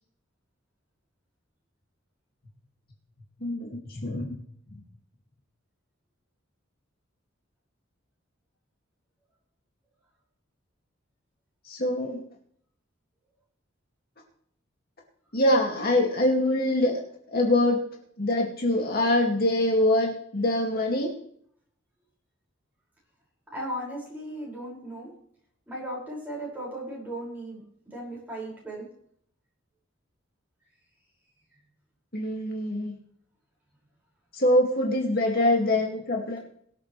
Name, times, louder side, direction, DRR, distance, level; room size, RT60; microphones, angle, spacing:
voice 1, 3.4-4.4 4.7-4.8 11.7-12.2 15.3-17.0 17.3-17.8 18.2-21.1 32.1-32.9 34.3-36.4, left 1 dB, 50° left, 0 dB, 2.3 m, -24 dB
voice 2, 23.5-25.1 25.7-28.9, right 1 dB, 10° right, -5 dB, 5.8 m, -36 dB
23.0 x 8.0 x 3.3 m, 0.64 s
head